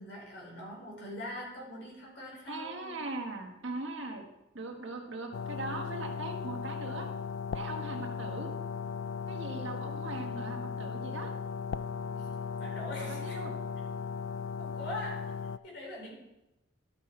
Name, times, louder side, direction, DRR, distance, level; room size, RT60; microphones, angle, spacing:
voice 1, 0.0-3.1 12.1-12.3 12.6-13.4 14.6-15.3 15.6-16.1, left 1 dB, 65° left, -3 dB, 3.9 m, -42 dB
voice 2, 2.5-4.3 4.5-7.1 7.5-8.5 9.3-11.3 13.0-13.5, right 2 dB, 80° right, 3 dB, 1.5 m, -40 dB
sound 1, 5.3-15.6, left 6 dB, 85° left, 0.3 m, -37 dB
12.5 x 5.9 x 4.4 m, 0.91 s
head